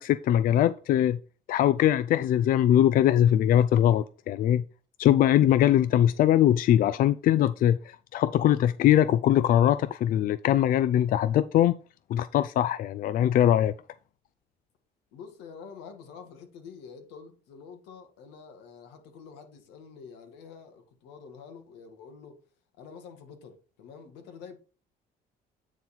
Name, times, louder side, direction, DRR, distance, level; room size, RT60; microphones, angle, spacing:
voice 1, 0.0-1.2 1.5-4.6 5.0-11.8 12.1-13.7, left 11 dB, 55° left, 0.4 m, -22 dB
voice 2, 15.1-22.4 22.8-24.6, left 6 dB, 90° left, 1.9 m, -47 dB
9.3 x 3.9 x 4.3 m
cardioid pair, 110°, 17 cm